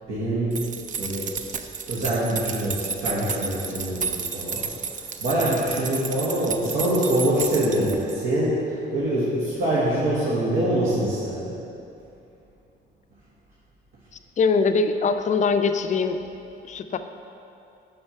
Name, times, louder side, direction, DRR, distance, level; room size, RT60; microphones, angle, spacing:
voice 1, 0.1-1.3 1.9-4.7 5.0-11.6, right 1 dB, 75° right, -9 dB, 1.2 m, -25 dB
sound 1, 0.5-8.3, right 5 dB, 40° right, 0.4 m, -32 dB
voice 2, 14.4-16.2 16.7-17.0, left 4 dB, 40° left, 8 dB, 0.4 m, -22 dB
5.3 x 4.4 x 5.6 m, 2.7 s
cardioid pair, 90°, 20 cm